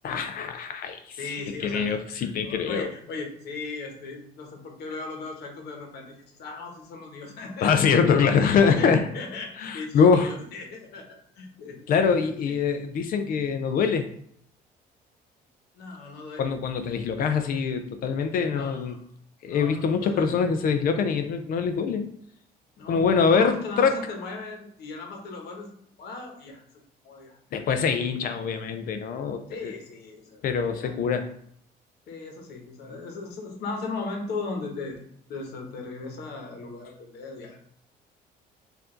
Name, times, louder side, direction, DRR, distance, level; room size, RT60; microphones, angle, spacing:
voice 1, 0.0-1.2 1.6-2.9 7.6-9.1 9.6-10.3 11.9-14.1 16.4-18.9 19.4-22.1 22.9-24.0 27.5-29.7 30.4-31.3, left 6 dB, 60° left, 7 dB, 0.5 m, -24 dB
voice 2, 1.2-1.9 2.2-7.9 8.5-11.8 12.5-12.6 15.7-16.6 18.5-19.0 19.4-20.4 22.8-25.7 26.0-26.6 27.0-27.8 29.5-31.0 32.1-35.0 35.3-37.7, left 3 dB, 75° left, 2 dB, 1.1 m, -37 dB
4.6 x 2.6 x 3.8 m, 0.66 s
cardioid pair, 110°, 17 cm